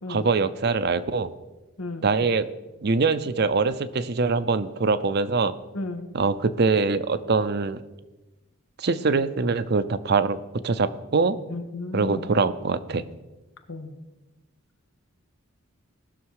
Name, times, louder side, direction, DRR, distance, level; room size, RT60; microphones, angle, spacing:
voice 1, 0.1-1.3 2.0-2.5 2.8-5.5 6.1-7.8 8.8-10.4 10.6-11.4 11.9-13.1, right 4 dB, 50° right, 13 dB, 0.6 m, -23 dB
voice 2, 5.7-6.1 11.5-12.4 13.7-14.0, left 2 dB, 90° left, 6 dB, 1.4 m, -34 dB
18.5 x 6.5 x 4.8 m, 1.1 s
head